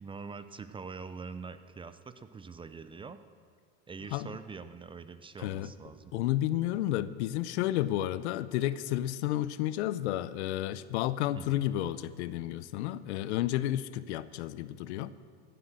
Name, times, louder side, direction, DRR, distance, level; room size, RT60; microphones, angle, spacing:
voice 1, 0.0-3.2 3.9-6.2 11.3-11.6, right 5 dB, 15° right, 11 dB, 0.5 m, -44 dB
voice 2, 5.4-5.7 6.1-15.1, left 13 dB, 75° left, 16 dB, 0.6 m, -31 dB
15.5 x 7.8 x 7.5 m, 2.2 s
supercardioid pair, 105°, 34 cm